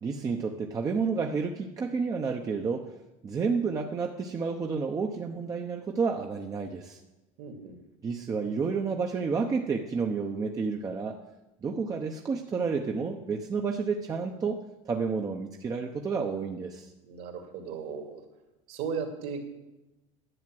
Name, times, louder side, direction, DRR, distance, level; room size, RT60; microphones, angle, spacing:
voice 1, 0.0-2.9 3.2-7.0 8.0-11.2 11.6-14.6 14.9-16.9, right 5 dB, 20° right, 2 dB, 0.8 m, -30 dB
voice 2, 7.4-7.7 17.1-18.2 18.7-19.4, right 6 dB, 60° right, 4 dB, 2.6 m, -36 dB
11.0 x 8.5 x 7.8 m, 1.0 s
cardioid pair, 145°, 17 cm